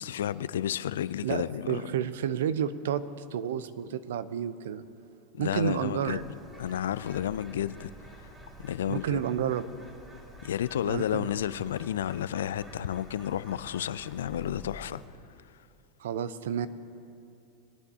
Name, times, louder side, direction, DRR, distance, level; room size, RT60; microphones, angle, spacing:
voice 1, 0.0-1.8 5.3-6.2 6.6-7.9 8.2-8.3 8.6-9.2 10.4-15.0, left 10 dB, 75° left, 17 dB, 0.3 m, -31 dB
voice 2, 1.2-3.0 3.3-4.8 5.4-6.2 8.9-9.7 10.9-11.3 16.0-16.7, right 9 dB, 75° right, 14 dB, 0.5 m, -30 dB
Bird, 6.1-15.1, equal, 15° right, 2.3 m, -49 dB
20.5 x 9.6 x 2.8 m, 2.5 s
hypercardioid pair, 90°, 0 cm